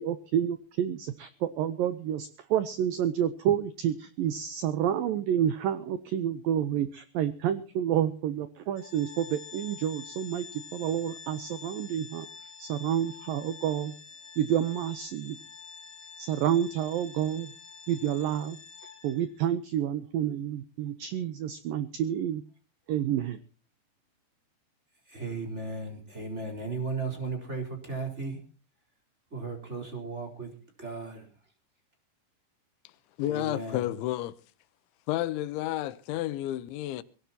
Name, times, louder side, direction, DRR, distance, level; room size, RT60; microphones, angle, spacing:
voice 1, 0.0-12.3 12.6-13.9 14.4-15.4 16.2-17.5 17.9-18.6 19.0-22.4 22.9-23.4, right 10 dB, 85° right, 2.0 m, -29 dB
Organ, 8.7-19.4, left 6 dB, 45° left, 4.6 m, -47 dB
voice 2, 25.1-28.4 29.3-30.5 30.8-31.3 33.3-33.9, right 3 dB, 15° right, 3.8 m, -35 dB
voice 3, 33.2-34.4 35.1-37.0, left 14 dB, 90° left, 3.3 m, -31 dB
22.0 x 17.0 x 2.9 m
omnidirectional pair, 5.2 m